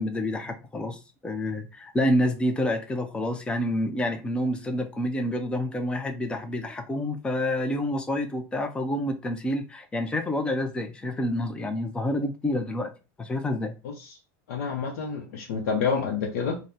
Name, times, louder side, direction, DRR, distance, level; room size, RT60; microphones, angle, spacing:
voice 1, 0.0-12.9 13.2-13.8, left 1 dB, 10° left, 0.4 m, -28 dB
voice 2, 13.8-14.2 14.5-16.6, left 5 dB, 85° left, 0.6 m, -28 dB
3.6 x 2.1 x 2.7 m
supercardioid pair, 140°, 9 cm